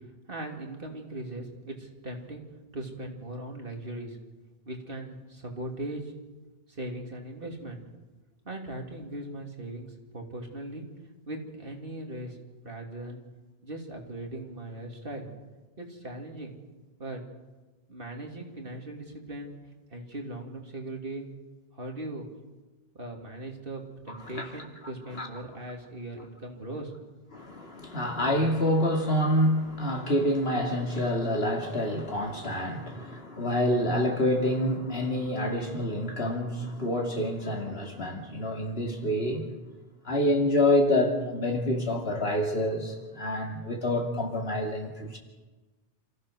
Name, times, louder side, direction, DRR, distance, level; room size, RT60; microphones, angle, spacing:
voice 1, 0.3-2.4 2.7-4.2 4.6-6.1 6.7-7.8 8.4-10.9 11.3-12.4 12.6-13.2 13.6-15.3 15.8-16.5 17.0-17.3 17.9-19.5 19.9-21.3 21.7-22.3 23.0-26.9, right 1 dB, 60° right, 1 dB, 3.1 m, -39 dB
voice 2, 24.1-24.4 25.2-25.3 27.3-39.5 40.0-45.2, left 1 dB, 75° left, 1 dB, 3.0 m, -27 dB
28.0 x 15.0 x 6.4 m, 1.2 s
omnidirectional pair, 1.1 m